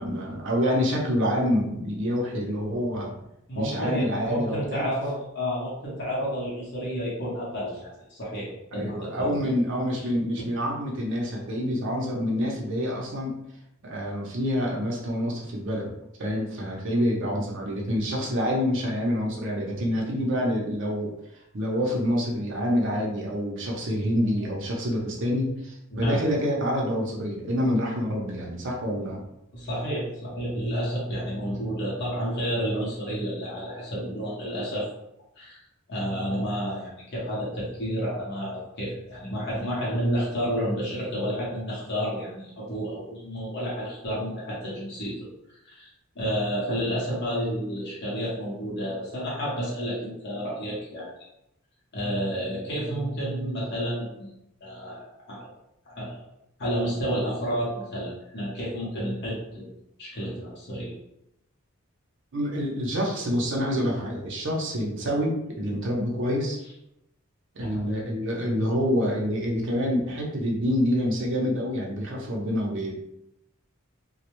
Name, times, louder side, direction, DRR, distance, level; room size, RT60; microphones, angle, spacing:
voice 1, 0.0-3.1 3.5-4.9 8.7-13.3 13.8-15.9 16.2-21.1 21.5-29.2 62.3-66.6 67.5-72.9, equal, 60° right, -2 dB, 0.7 m, -27 dB
voice 2, 3.5-9.3 10.0-10.1 10.4-10.5 25.9-26.2 29.5-34.9 35.4-35.6 35.9-45.3 45.6-45.9 46.1-51.1 51.9-54.3 54.6-55.5 55.9-56.2 56.6-59.7 60.0-60.9 67.6-67.8, equal, 55° left, -6 dB, 0.8 m, -30 dB
2.3 x 2.1 x 2.9 m, 0.84 s
head